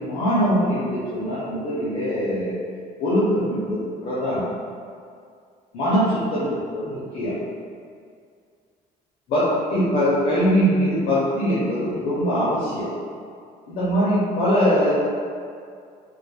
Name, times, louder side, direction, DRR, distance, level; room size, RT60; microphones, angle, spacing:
voice 1, 0.0-2.6 3.0-4.5 5.7-7.4 9.3-12.9 13.7-14.9, equal, 60° left, -10 dB, 0.6 m, -22 dB
2.5 x 2.3 x 2.3 m, 2.2 s
cardioid pair, 110°, 17 cm